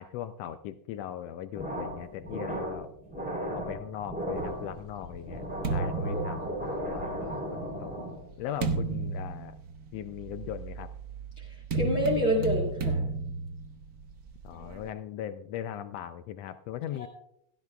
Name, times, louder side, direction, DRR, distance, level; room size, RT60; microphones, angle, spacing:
voice 1, 0.0-2.9 3.5-7.9 8.4-9.5 9.9-10.9 14.4-17.1, left 10 dB, 80° left, 10 dB, 1.5 m, -39 dB
sound 1, 1.5-8.4, equal, 5° right, 3.0 m, -36 dB
sound 2, 4.3-7.1 7.8-14.9, right 4 dB, 90° right, 0.8 m, -34 dB
voice 2, 11.4-13.0 16.9-17.1, equal, 45° left, -3 dB, 2.3 m, -28 dB
16.5 x 13.0 x 2.3 m, 0.75 s
omnidirectional pair, 3.3 m